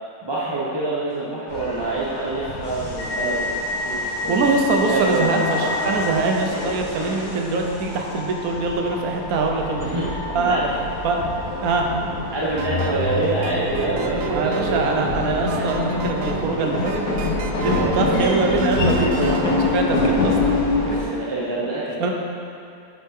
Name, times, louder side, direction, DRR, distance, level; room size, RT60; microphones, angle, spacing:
voice 1, 0.2-4.3 4.8-5.3 9.8-10.8 12.3-15.0 15.6-15.7 17.7-18.3 18.9-19.3 20.9-22.1, right 2 dB, 20° right, -7 dB, 0.8 m, -26 dB
sound 1, 1.5-21.0, left 2 dB, 85° left, 1.9 m, -26 dB
voice 2, 4.0-10.0 10.3-10.6 11.0-11.3 11.6-11.9 14.3-17.0 17.6-20.6 20.9-21.3 22.0-22.1, right 3 dB, 70° right, 2 dB, 1.3 m, -23 dB
sound 2, 12.6-19.5, right 6 dB, 90° right, 1.2 m, -33 dB
9.9 x 7.2 x 3.7 m, 2.4 s
omnidirectional pair, 1.7 m